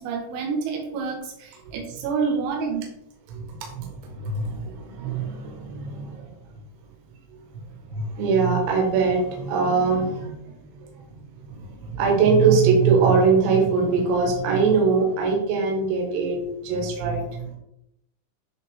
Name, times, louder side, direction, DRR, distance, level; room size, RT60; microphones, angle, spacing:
voice 1, 0.0-2.9, right 5 dB, 85° right, 0 dB, 4.1 m, -28 dB
voice 2, 3.3-6.3 7.9-10.9 11.5-16.4 16.6-17.5, right 5 dB, 65° right, 1 dB, 3.3 m, -22 dB
10.5 x 4.1 x 3.6 m, 0.81 s
omnidirectional pair, 5.9 m